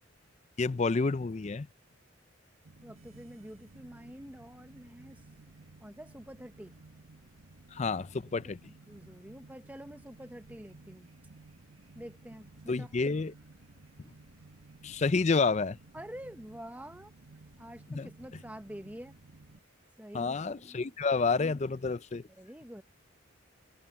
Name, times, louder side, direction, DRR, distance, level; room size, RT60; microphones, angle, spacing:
voice 1, 0.6-1.7 7.7-8.6 12.7-13.3 14.8-15.8 17.9-18.1 20.1-22.2, left 4 dB, 35° left, 0.4 m, -29 dB
sound 1, 2.6-19.6, right 3 dB, 85° right, 1.3 m, -56 dB
voice 2, 2.8-5.2 5.8-6.8 8.9-11.1 11.9-12.9 15.9-17.1 17.6-19.1 20.0-20.9 22.4-22.8, equal, 10° right, 1.1 m, -47 dB
open air
head